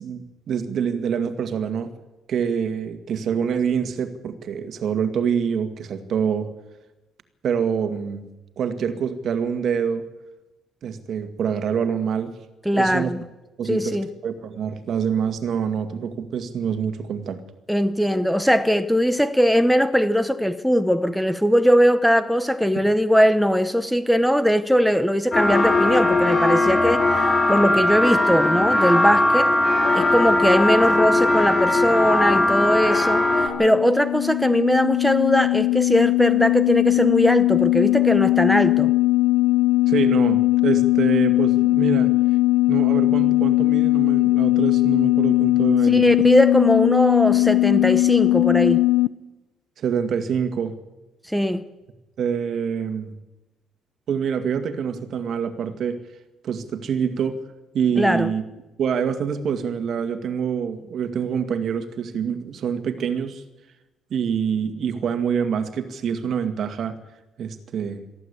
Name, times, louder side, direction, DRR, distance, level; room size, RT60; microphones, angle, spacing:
voice 1, 0.0-1.9 2.3-6.5 7.4-8.2 8.6-10.0 10.8-12.4 12.7-13.1 13.6-14.0 14.2-17.4 39.9-42.1 42.7-46.1 49.8-50.7 52.2-53.1 54.1-56.0 56.4-57.4 57.7-58.4 58.8-63.4 64.1-67.0 67.4-68.0, right 7 dB, 50° right, 9 dB, 1.9 m, -26 dB
voice 2, 12.6-13.2 13.7-14.1 17.7-29.5 29.9-38.9 45.9-48.8 51.2-51.6 58.0-58.3, equal, ahead, 11 dB, 0.9 m, -20 dB
sound 1, 25.3-33.5, left 2 dB, 25° left, 3.1 m, -19 dB
sound 2, 32.9-49.1, left 18 dB, 80° left, 0.6 m, -19 dB
23.0 x 14.5 x 8.3 m, 1.1 s
cardioid pair, 140°, 0 cm